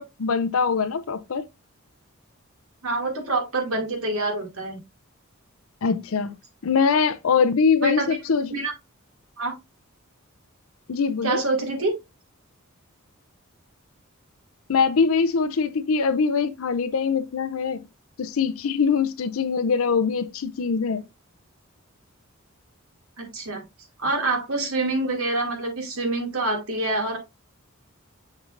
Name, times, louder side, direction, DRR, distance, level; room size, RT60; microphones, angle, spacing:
voice 1, 0.0-1.4 5.8-6.4 6.6-8.5 10.9-11.4 14.7-17.8 18.2-21.0, left 5 dB, 70° left, 0.5 m, -23 dB
voice 2, 2.8-4.8 7.8-8.1 8.5-8.7 9.4-9.5 11.2-12.0 23.2-23.6 24.0-27.2, right 2 dB, 90° right, 2.4 m, -26 dB
6.5 x 5.9 x 2.5 m
head